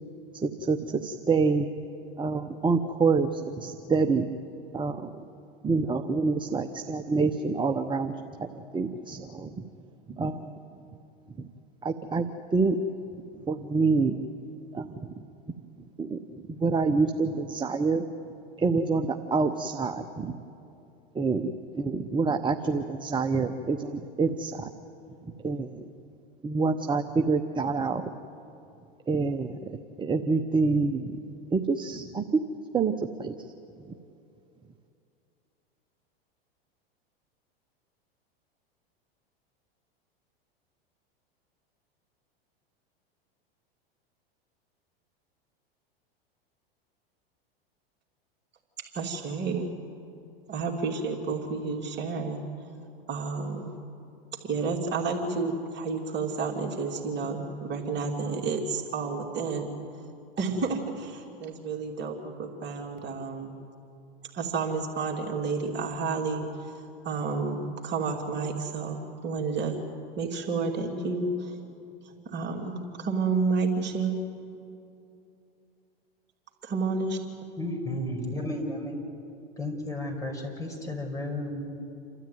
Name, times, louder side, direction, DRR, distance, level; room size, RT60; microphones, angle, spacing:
voice 1, 0.4-1.7 2.2-4.3 4.7-5.1 5.6-8.1 8.4-8.5 8.7-9.5 10.2-10.4 11.4-11.5 11.8-12.2 12.5-12.8 13.5-14.1 14.7-14.9 16.0-16.2 16.5-18.0 18.6-20.4 21.1-24.7 25.4-25.8 26.4-28.1 29.1-31.2 31.5-32.4 32.7-32.9 33.2-33.3, right 4 dB, 15° right, 6 dB, 0.9 m, -27 dB
voice 2, 48.9-49.7 50.5-52.4 53.1-53.8 54.4-59.7 60.4-63.5 64.3-69.8 70.2-71.5 72.0-74.1 76.6-77.2, right 4 dB, 35° right, 1 dB, 3.0 m, -30 dB
voice 3, 77.6-79.0 79.6-81.7, left 1 dB, 10° left, 1 dB, 5.4 m, -33 dB
28.5 x 13.0 x 9.4 m, 2.7 s
hypercardioid pair, 105°, 30 cm